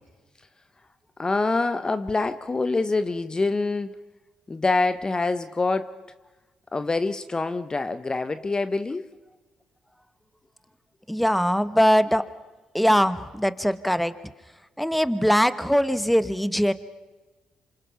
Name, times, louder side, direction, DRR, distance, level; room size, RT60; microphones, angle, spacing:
voice 1, 1.2-3.9 4.5-6.1 6.7-9.1, left 3 dB, 30° left, 12 dB, 0.9 m, -25 dB
voice 2, 11.1-12.3 12.7-14.1 14.8-16.7, equal, ahead, 13 dB, 1.2 m, -21 dB
27.5 x 25.5 x 5.8 m, 1.2 s
supercardioid pair, 60°, 3 cm